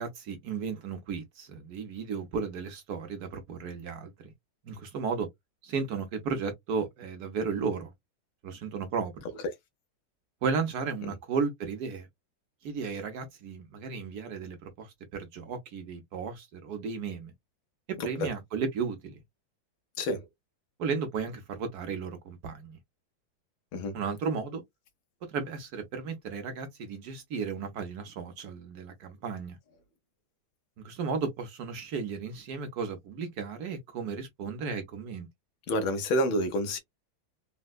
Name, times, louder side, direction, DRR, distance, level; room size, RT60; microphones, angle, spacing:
voice 1, 0.0-4.3 4.6-5.3 5.6-7.9 8.4-9.1 10.4-12.1 12.6-17.3 17.9-19.2 20.8-22.8 23.9-24.6 25.3-29.6 30.8-35.3, right 5 dB, 65° right, 1.0 m, -34 dB
voice 2, 35.7-36.8, equal, 80° left, 1.7 m, -28 dB
4.1 x 2.1 x 2.4 m
omnidirectional pair, 2.2 m